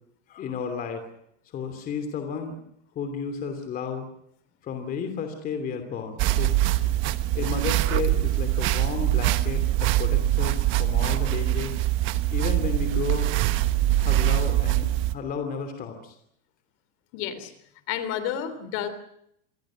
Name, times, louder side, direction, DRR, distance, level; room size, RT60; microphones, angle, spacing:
voice 1, 0.3-1.0 1.5-2.6 2.9-4.1 4.6-6.5 7.3-11.8 12.3-13.3 14.0-16.2, left 6 dB, 25° left, 6 dB, 2.9 m, -32 dB
sound 1, 6.2-15.1, right 15 dB, 35° right, 1.2 m, -23 dB
voice 2, 17.1-17.5 17.9-18.9, left 10 dB, 40° left, 13 dB, 3.4 m, -31 dB
27.0 x 21.0 x 6.3 m, 0.74 s
supercardioid pair, 170°, 36 cm